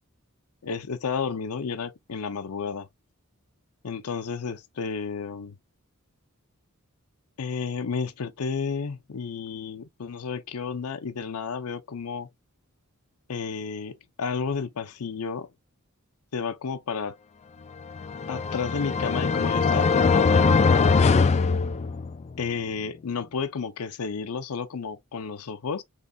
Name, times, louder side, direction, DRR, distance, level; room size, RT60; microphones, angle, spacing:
voice 1, 0.6-2.9 3.8-5.6 7.4-12.3 13.3-15.5 16.3-17.2 18.3-21.2 22.4-25.8, left 5 dB, 85° left, 0.6 m, -32 dB
sound 1, 17.9-22.3, left 4 dB, 30° left, 0.3 m, -21 dB
4.0 x 3.1 x 2.3 m
head